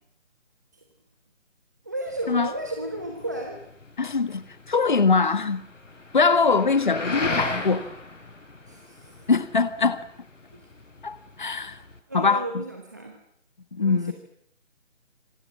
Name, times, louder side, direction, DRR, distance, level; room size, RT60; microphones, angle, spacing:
voice 1, 1.8-3.6 8.7-9.3 10.5-10.7 12.1-13.2 13.8-14.1, right 1 dB, 15° right, 1.2 m, -34 dB
sound 1, 2.1-12.0, left 3 dB, 75° left, 6.3 m, -36 dB
voice 2, 4.0-5.6 6.1-7.9 9.3-10.0 11.0-11.8 12.1-12.6 13.7-14.1, left 4 dB, 40° left, 1.4 m, -22 dB
26.5 x 24.5 x 7.5 m
figure-of-eight pair, 175°, 38 cm